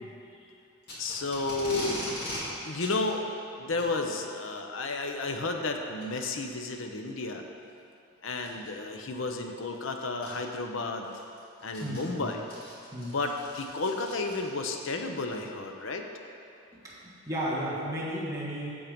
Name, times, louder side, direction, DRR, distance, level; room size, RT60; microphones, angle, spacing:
Packing tape duct tape, 0.8-2.4 2.8-2.9 3.7-3.9 5.1-5.3 6.0-6.1 6.7-6.8 8.4-8.7 9.7-9.8 10.2-10.3 10.8-14.7, left 1 dB, 45° left, 2.5 m, -40 dB
voice 1, 1.0-2.0 2.6-3.2 3.6-7.4 8.2-11.1 11.6-12.5 13.1-16.0, left 3 dB, 60° left, 4 dB, 0.8 m, -32 dB
voice 2, 11.8-12.3 12.9-13.2 16.7-18.7, equal, 15° right, -8 dB, 1.5 m, -34 dB
8.7 x 7.4 x 5.2 m, 2.6 s
head